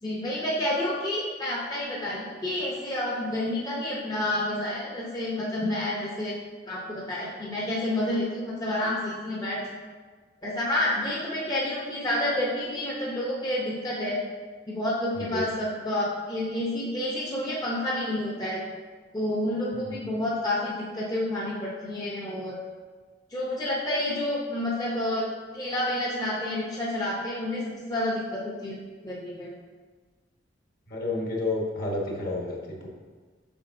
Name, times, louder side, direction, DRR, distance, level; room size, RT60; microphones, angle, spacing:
voice 1, 0.0-6.4 6.7-9.6 10.4-14.2 14.7-18.7 19.1-22.6 23.3-25.3 25.5-28.8 29.0-29.5, left 1 dB, 20° left, -5 dB, 0.7 m, -29 dB
voice 2, 30.9-32.9, left 2 dB, 55° left, -2 dB, 1.3 m, -30 dB
6.9 x 6.1 x 2.6 m, 1.4 s
head